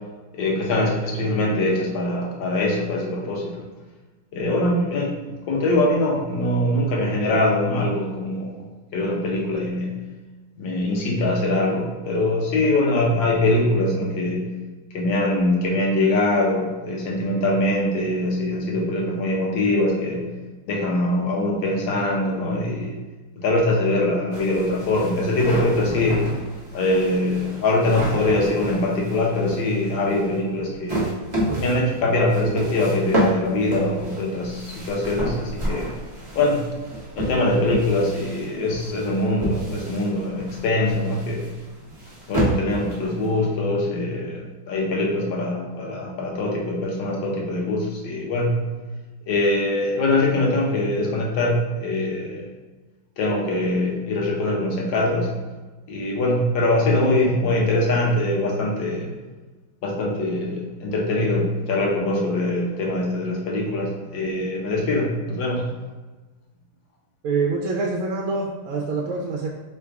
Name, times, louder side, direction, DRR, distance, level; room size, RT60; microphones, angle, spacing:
voice 1, 0.3-3.6 4.3-8.7 8.9-9.9 10.6-14.5 14.9-20.3 20.7-22.9 23.4-26.2 26.7-31.1 31.6-35.9 36.3-36.6 37.2-41.5 42.3-48.6 49.3-52.4 53.2-55.3 55.9-59.1 59.8-65.7, left 1 dB, 65° left, -2 dB, 1.5 m, -23 dB
sound 1, 24.3-43.5, right 1 dB, 50° right, 0.3 m, -30 dB
voice 2, 67.2-69.5, right 4 dB, 80° right, -2 dB, 1.4 m, -25 dB
4.0 x 2.3 x 4.6 m, 1.3 s
omnidirectional pair, 2.4 m